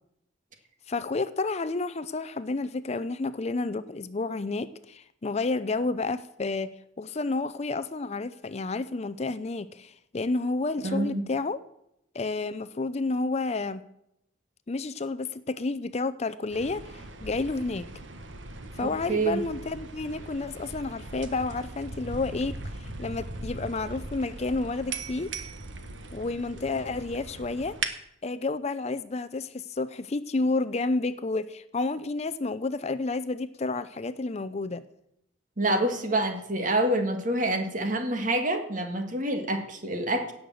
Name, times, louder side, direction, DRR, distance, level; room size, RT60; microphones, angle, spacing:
voice 1, 0.9-11.6 12.1-13.8 14.7-17.9 18.7-22.5 22.8-25.3 26.1-27.8 28.2-34.8, left 3 dB, 35° left, 14 dB, 0.5 m, -30 dB
voice 2, 10.8-11.2 19.1-19.4 35.6-40.3, right 1 dB, 45° right, 5 dB, 2.1 m, -27 dB
sound 1, 16.5-27.9, right 3 dB, 75° right, 1.4 m, -39 dB
17.0 x 6.6 x 7.6 m, 0.79 s
head